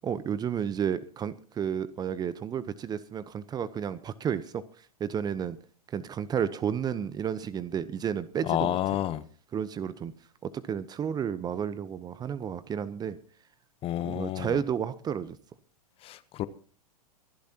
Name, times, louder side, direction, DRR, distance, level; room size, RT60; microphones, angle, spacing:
voice 1, 0.0-4.6 5.0-5.6 5.9-8.8 9.5-10.1 10.4-13.2 14.0-15.4, right 8 dB, 20° right, 0.9 m, -32 dB
voice 2, 8.5-9.2 13.8-14.6 16.0-16.5, left 13 dB, 30° left, 0.9 m, -29 dB
24.5 x 12.0 x 2.9 m
figure-of-eight pair, 105°, 19 cm